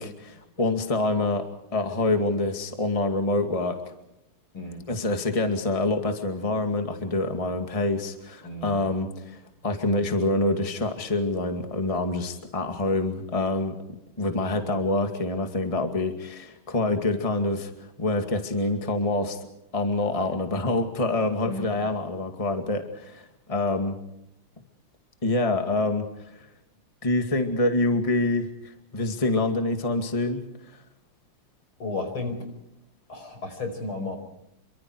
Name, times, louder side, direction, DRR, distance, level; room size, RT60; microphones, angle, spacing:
voice 1, 0.0-1.4 1.7-3.8 4.9-13.8 14.2-17.7 18.0-19.5 19.7-24.0 25.2-26.5 27.0-30.8, left 2 dB, 15° left, 6 dB, 2.2 m, -26 dB
voice 2, 4.5-4.8 8.4-8.8 14.2-14.5 21.4-21.7 31.8-32.5 33.1-34.2, left 2 dB, 70° left, 6 dB, 6.0 m, -33 dB
28.5 x 24.5 x 4.7 m, 0.84 s
omnidirectional pair, 2.4 m